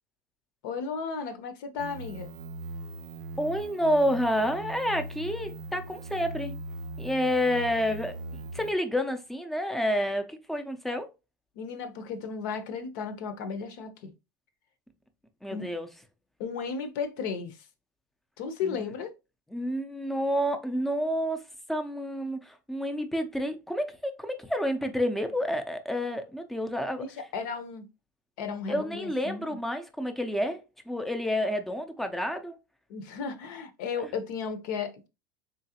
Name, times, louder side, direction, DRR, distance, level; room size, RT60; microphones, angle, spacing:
voice 1, 0.6-2.3 11.5-14.1 15.5-15.7 16.4-17.7 18.4-19.1 27.0-27.9 28.4-29.6 32.9-35.1, left 5 dB, 65° left, 0.8 m, -34 dB
sound 1, 1.8-8.7, right 2 dB, 85° right, 0.4 m, -40 dB
voice 2, 3.4-6.6 7.0-11.1 15.4-15.9 18.6-18.9 19.5-21.4 21.7-27.0 28.7-32.6 34.0-34.1, equal, ahead, 0.5 m, -29 dB
3.8 x 3.1 x 2.8 m
supercardioid pair, 145°, 11 cm